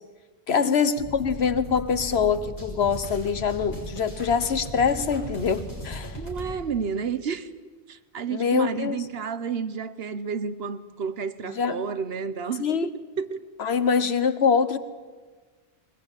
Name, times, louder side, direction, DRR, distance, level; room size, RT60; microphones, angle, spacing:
voice 1, 0.5-6.2 8.3-9.0 11.4-11.8 12.6-12.9 13.6-14.8, left 6 dB, 90° left, 1.4 m, -24 dB
sound 1, 1.0-6.6, equal, 40° left, 5.7 m, -37 dB
voice 2, 6.2-12.9 13.2-13.4, right 6 dB, 75° right, 1.2 m, -31 dB
21.0 x 20.5 x 8.9 m
omnidirectional pair, 1.0 m